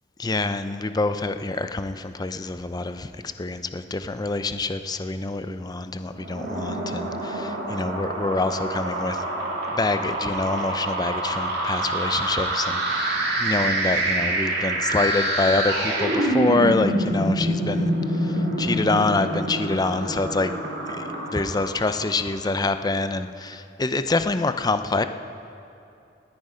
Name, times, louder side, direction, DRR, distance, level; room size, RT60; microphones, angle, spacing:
voice 1, 0.2-9.2 9.7-20.5 20.9-21.0 21.3-25.1, left 3 dB, 20° left, 10 dB, 0.5 m, -26 dB
sound 1, 6.1-22.5, right 1 dB, 60° right, 2.5 m, -26 dB
19.0 x 9.7 x 5.1 m, 2.7 s
head